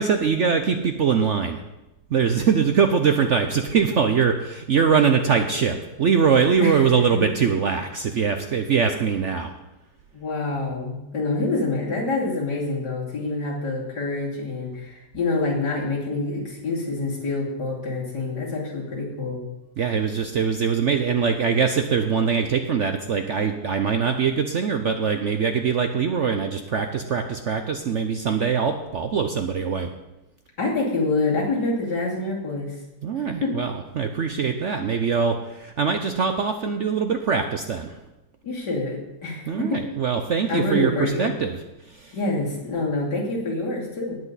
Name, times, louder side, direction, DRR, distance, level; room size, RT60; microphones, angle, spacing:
voice 1, 0.0-1.6 2.1-9.5 19.8-29.9 33.0-37.9 39.5-41.6 42.0-42.1, right 6 dB, 60° right, 6 dB, 0.8 m, -22 dB
voice 2, 6.6-7.3 10.1-19.4 30.6-32.8 33.4-33.5 38.4-39.8 40.5-41.3 42.1-44.2, left 2 dB, 70° left, -4 dB, 3.4 m, -26 dB
18.0 x 8.1 x 4.1 m, 0.96 s
omnidirectional pair, 1.9 m